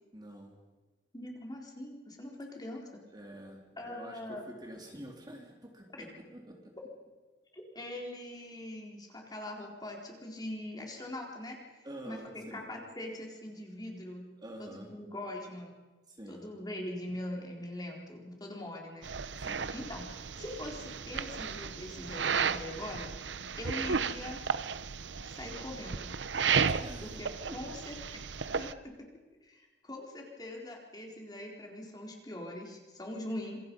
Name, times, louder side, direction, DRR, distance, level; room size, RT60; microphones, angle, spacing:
voice 1, 0.1-0.6 3.1-6.7 11.8-12.6 14.4-14.9 16.1-16.4 19.4-19.7 26.8-27.1 27.5-27.6, right 1 dB, 25° right, 1 dB, 3.6 m, -47 dB
voice 2, 1.1-3.0 3.8-4.5 7.5-14.3 14.6-15.7 16.3-19.1 19.7-23.1 23.6-24.4 25.2-26.1 27.0-28.2 28.6-28.9 29.4-33.6, left 1 dB, 20° left, 0 dB, 4.1 m, -42 dB
sound 1, 19.0-28.7, right 6 dB, 85° right, 0.9 m, -34 dB
27.5 x 24.5 x 5.5 m, 1.2 s
head